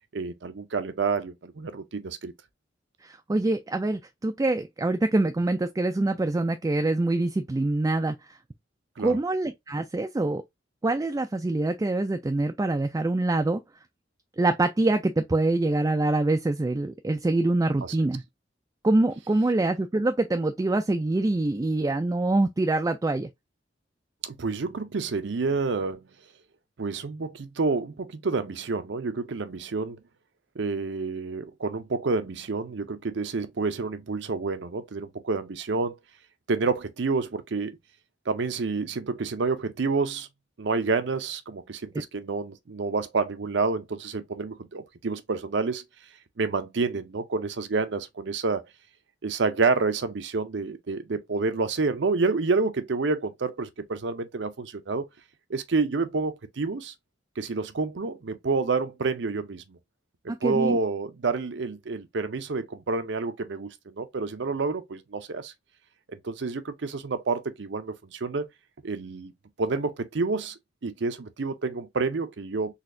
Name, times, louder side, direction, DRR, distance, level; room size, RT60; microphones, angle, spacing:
voice 1, 0.1-2.3 9.0-9.2 17.8-18.0 24.2-26.0 26.8-30.0 30.6-35.9 36.5-37.8 38.3-40.3 40.6-45.8 46.4-48.6 49.2-55.1 55.5-56.9 57.4-59.8 60.2-65.5 66.1-68.5 68.8-69.3 69.6-72.7, right 4 dB, 65° right, 0.6 m, -29 dB
voice 2, 3.0-8.4 9.0-10.4 10.8-13.6 14.4-18.2 18.8-23.3 60.3-60.8, right 2 dB, 20° right, 0.3 m, -25 dB
4.1 x 2.7 x 2.6 m
head